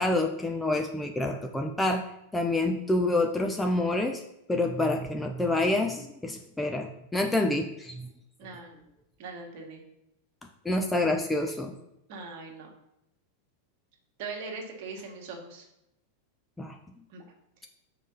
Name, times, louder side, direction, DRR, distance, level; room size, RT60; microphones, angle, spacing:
voice 1, 0.0-2.0 2.3-4.2 4.5-8.1 10.6-11.7 16.6-16.7, left 2 dB, 10° left, 3 dB, 0.6 m, -27 dB
voice 2, 8.4-8.7 9.2-9.8 12.1-12.7 14.2-15.7 17.1-17.2, right 4 dB, 45° right, 1 dB, 1.8 m, -40 dB
5.3 x 4.9 x 5.6 m, 0.84 s
figure-of-eight pair, 90°, 0 cm